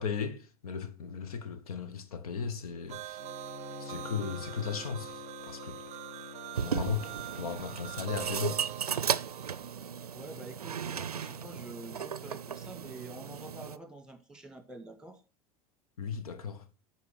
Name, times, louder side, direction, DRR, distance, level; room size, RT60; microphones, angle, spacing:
voice 1, 0.0-3.2 3.8-5.8 6.6-8.6 16.0-16.6, left 6 dB, 75° left, 1.1 m, -36 dB
sound 1, 2.9-9.7, right 14 dB, 35° right, 0.5 m, -44 dB
Bowed string instrument, 3.2-7.7, left 8 dB, 45° left, 1.6 m, -47 dB
sound 2, 6.5-13.8, right 7 dB, 90° right, 0.5 m, -35 dB
voice 2, 10.1-15.2, right 2 dB, 5° right, 1.9 m, -47 dB
11.0 x 4.4 x 6.3 m
figure-of-eight pair, 80°, 19 cm